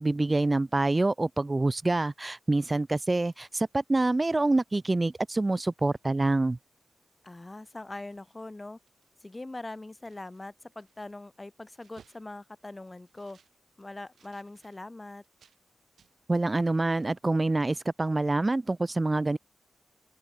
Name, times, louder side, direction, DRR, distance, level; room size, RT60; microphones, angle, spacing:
voice 1, 0.0-6.6 16.3-19.4, right 2 dB, 25° right, 0.6 m, -26 dB
sound 1, 4.5-6.4 6.8-7.0 7.2-8.5 8.8-15.6 16.0-16.8 17.0-17.2, right 7 dB, 90° right, 6.5 m, -65 dB
voice 2, 7.2-8.8 9.2-13.4 13.8-15.2, left 2 dB, 20° left, 2.8 m, -42 dB
open air
wide cardioid pair, 100°, 0 cm